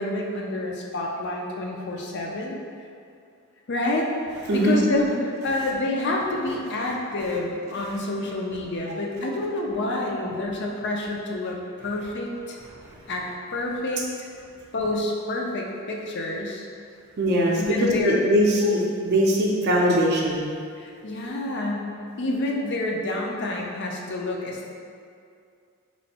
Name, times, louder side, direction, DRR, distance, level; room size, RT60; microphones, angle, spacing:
voice 1, 0.0-2.6 3.7-4.1 4.5-11.6 11.8-12.6 13.1-13.2 13.5-14.0 14.7-16.7 17.5-18.5 20.8-24.8, left 2 dB, 50° left, 0 dB, 0.5 m, -28 dB
voice 2, 4.5-4.8 14.0-14.1 17.2-20.5, equal, 50° right, -3 dB, 0.5 m, -21 dB
3.1 x 2.6 x 4.1 m, 2.4 s
head